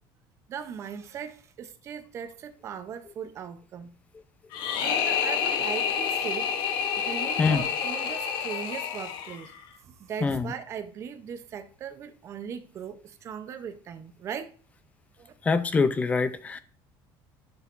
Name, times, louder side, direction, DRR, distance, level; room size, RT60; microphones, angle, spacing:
voice 1, 0.5-3.9 4.8-9.5 9.8-14.5 15.2-15.3, right 8 dB, 30° right, 0.7 m, -39 dB
sound 1, 4.5-9.6, left 7 dB, 55° left, 0.9 m, -29 dB
voice 2, 15.4-16.6, left 4 dB, 15° left, 0.4 m, -24 dB
11.0 x 6.3 x 2.5 m
cardioid pair, 180°, 9 cm